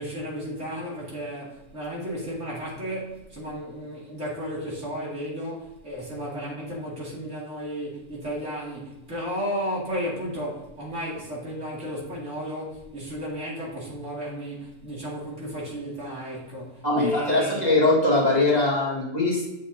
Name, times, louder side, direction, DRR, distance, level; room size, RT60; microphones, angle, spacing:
voice 1, 0.0-17.6, equal, 55° right, -4 dB, 2.7 m, -33 dB
voice 2, 16.8-19.5, left 2 dB, 30° left, -5 dB, 1.7 m, -21 dB
8.0 x 6.1 x 2.7 m, 1.0 s
omnidirectional pair, 1.5 m